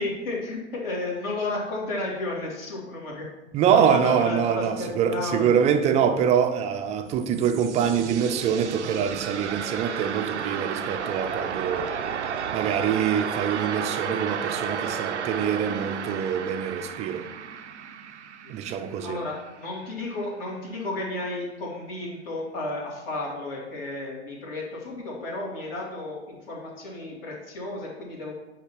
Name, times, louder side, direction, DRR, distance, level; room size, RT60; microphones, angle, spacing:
voice 1, 0.0-3.2 3.7-5.5 18.4-18.5 19.0-28.3, left 2 dB, 55° left, 2.5 m, -32 dB
voice 2, 3.5-11.9 12.5-17.3 18.5-19.2, right 8 dB, 20° right, 0.5 m, -24 dB
sound 1, 6.9-19.7, right 7 dB, 75° right, 0.6 m, -33 dB
8.1 x 2.9 x 5.8 m
figure-of-eight pair, 95°, 34 cm